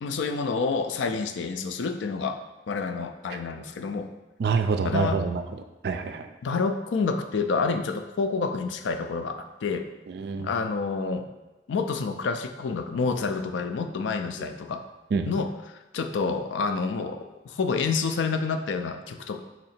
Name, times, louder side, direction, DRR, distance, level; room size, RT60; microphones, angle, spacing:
voice 1, 0.0-2.4 2.7-4.1 4.8-5.2 6.4-9.9 10.4-11.3 11.7-14.8 15.3-19.4, left 4 dB, 80° left, 8 dB, 0.4 m, -28 dB
voice 2, 4.4-5.4 5.8-6.3 10.1-10.5 14.4-14.5 15.1-15.3, right 5 dB, 55° right, 7 dB, 0.3 m, -26 dB
4.2 x 2.8 x 4.2 m, 1.1 s
head